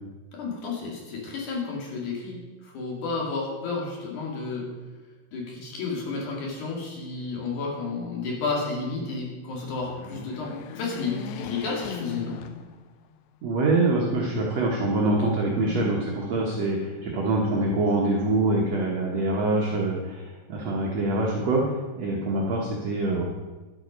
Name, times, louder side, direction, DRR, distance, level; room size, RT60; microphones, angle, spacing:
voice 1, 0.3-4.7 5.3-12.4 15.6-15.9, left 4 dB, 50° left, -2 dB, 3.3 m, -31 dB
sound 1, 9.6-13.2 13.7-13.8 14.9-15.7, left 9 dB, 85° left, 2.9 m, -39 dB
voice 2, 13.4-23.2, right 2 dB, 80° right, -2 dB, 1.4 m, -25 dB
11.0 x 8.1 x 5.3 m, 1.2 s
omnidirectional pair, 5.0 m